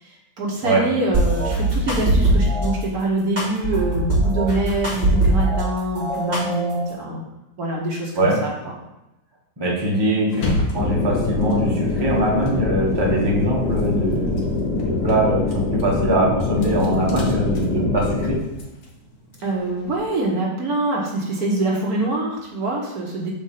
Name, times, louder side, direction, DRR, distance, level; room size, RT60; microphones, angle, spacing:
voice 1, 0.0-7.2 7.6-8.7 19.4-23.3, right 2 dB, 60° right, -2 dB, 1.5 m, -25 dB
sound 1, 1.1-2.7 3.4-5.6 5.9-6.9, right 1 dB, 30° right, 2.8 m, -21 dB
voice 2, 9.6-14.4 14.8-18.4, right 1 dB, 15° right, -4 dB, 1.3 m, -22 dB
sound 2, 10.3-13.3 13.6-20.0, left 2 dB, 60° left, 1.5 m, -33 dB
sound 3, 10.7-18.4, left 3 dB, 80° left, 1.8 m, -24 dB
5.2 x 4.2 x 5.6 m, 0.94 s
omnidirectional pair, 1.8 m